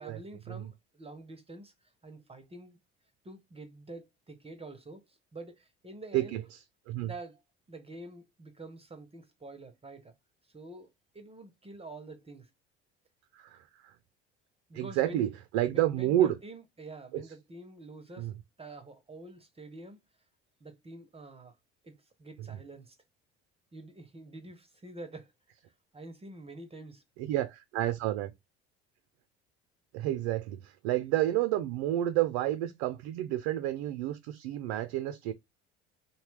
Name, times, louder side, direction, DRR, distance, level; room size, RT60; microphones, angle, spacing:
voice 1, 0.0-1.7 2.0-2.8 3.2-6.4 7.0-7.4 7.7-10.1 10.5-12.5 14.7-15.3 15.7-18.3 18.6-20.0 20.6-21.5 21.8-23.0 23.7-25.3 25.9-27.0, right 2 dB, 20° right, 0.6 m, -47 dB
voice 2, 6.1-6.6 6.9-7.1 13.3-13.9 14.7-16.4 17.1-17.3 18.2-18.4 22.5-22.6 27.2-28.3 29.9-35.3, right 13 dB, 70° right, 0.4 m, -30 dB
2.7 x 2.1 x 3.1 m
hypercardioid pair, 70°, 31 cm